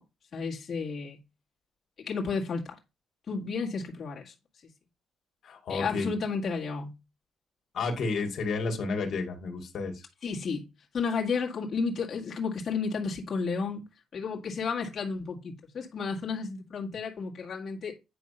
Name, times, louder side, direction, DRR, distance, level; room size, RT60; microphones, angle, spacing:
voice 1, 0.3-1.2 2.0-2.8 3.3-4.3 5.7-6.9 10.2-10.7 10.9-13.8 14.1-17.9, left 5 dB, 50° left, 2.0 m, -32 dB
voice 2, 5.4-6.1 7.7-10.1, left 4 dB, 65° left, 2.1 m, -31 dB
9.4 x 3.5 x 5.6 m
cardioid pair, 90°, 0 cm